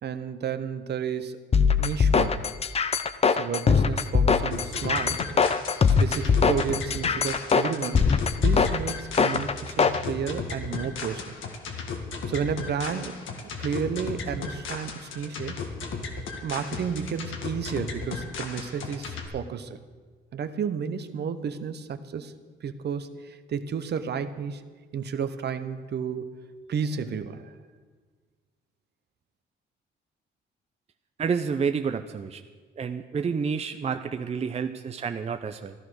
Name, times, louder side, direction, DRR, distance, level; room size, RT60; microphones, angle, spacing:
voice 1, 0.0-1.4 1.8-2.4 3.3-5.2 5.9-11.3 12.3-13.3 13.6-15.6 16.4-19.8 20.3-22.3 22.6-24.6 24.9-26.3 26.7-27.5, right 7 dB, 55° right, 10 dB, 1.0 m, -32 dB
sound 1, 1.5-10.0, left 5 dB, 30° left, 0.6 m, -22 dB
sound 2, 4.5-19.3, left 4 dB, 80° left, 1.8 m, -35 dB
voice 2, 31.2-32.4 32.8-35.7, right 6 dB, 30° right, 8 dB, 0.6 m, -29 dB
14.5 x 11.5 x 6.3 m, 1.5 s
cardioid pair, 90°, 20 cm